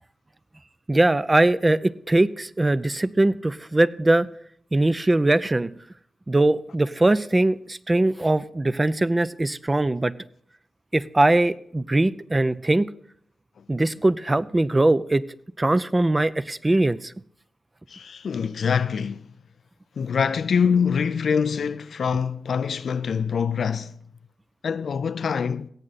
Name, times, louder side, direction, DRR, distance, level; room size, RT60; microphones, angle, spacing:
voice 1, 0.9-4.3 4.7-5.7 6.3-10.1 10.9-12.9 13.7-15.2 15.6-17.1, right 2 dB, 30° right, 0.6 m, -21 dB
voice 2, 17.9-19.3 20.0-23.9 24.6-25.7, left 6 dB, 70° left, 0.4 m, -24 dB
17.0 x 7.7 x 4.1 m
supercardioid pair, 40°, 0 cm